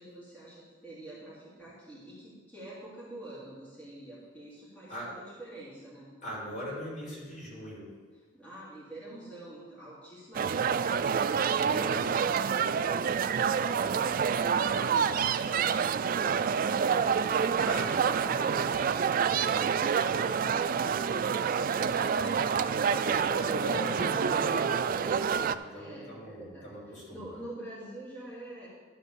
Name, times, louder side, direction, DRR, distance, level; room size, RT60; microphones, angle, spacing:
voice 1, 0.0-6.1 8.1-16.1 21.2-23.8 25.7-28.7, right 1 dB, 10° left, -10 dB, 2.8 m, -47 dB
voice 2, 6.2-7.9 11.7-12.1 17.6-18.8 23.0-27.2, equal, 45° left, -5 dB, 3.7 m, -40 dB
sound 1, 10.3-25.5, right 6 dB, 45° right, 0.3 m, -27 dB
12.5 x 4.5 x 6.8 m, 1.4 s
head